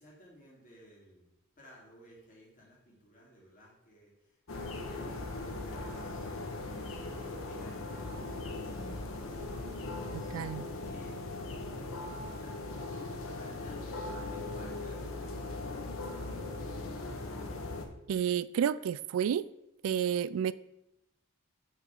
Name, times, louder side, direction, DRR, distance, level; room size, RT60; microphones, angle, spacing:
voice 1, 0.0-16.9, equal, 40° left, 2.5 m, -57 dB
sound 1, 4.5-17.9, left 2 dB, 85° left, 0.9 m, -39 dB
voice 2, 10.1-10.6 18.1-19.5 19.8-20.5, right 8 dB, 85° right, 0.3 m, -30 dB
6.2 x 4.0 x 6.1 m
head